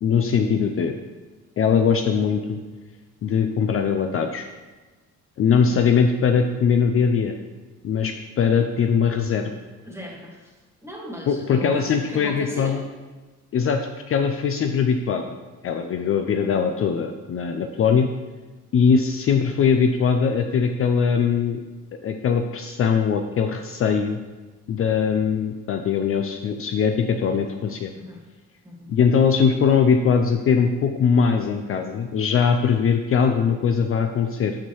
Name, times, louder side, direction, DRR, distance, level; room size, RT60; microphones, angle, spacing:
voice 1, 0.0-1.0 1.6-2.6 3.2-4.5 5.4-7.3 7.8-9.5 11.3-12.8 13.5-13.8 14.1-15.4 15.6-18.1 18.7-21.6 22.0-24.2 24.7-27.9 28.9-34.5, left 6 dB, 50° left, 5 dB, 0.4 m, -21 dB
voice 2, 9.8-10.5 10.8-12.8 27.2-27.4 28.0-28.2 28.6-28.9, equal, 10° right, -2 dB, 1.6 m, -37 dB
6.6 x 5.5 x 3.1 m, 1.2 s
cardioid pair, 90°, 30 cm